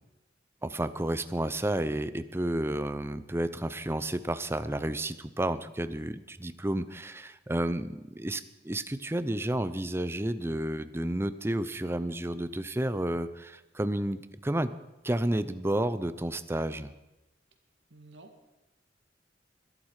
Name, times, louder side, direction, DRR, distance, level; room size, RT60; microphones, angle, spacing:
voice 1, 0.6-14.7 15.0-16.9, right 1 dB, 15° right, 13 dB, 0.6 m, -31 dB
voice 2, 17.9-18.5, right 2 dB, 85° right, 5 dB, 2.2 m, -52 dB
22.0 x 11.5 x 4.9 m, 1.0 s
head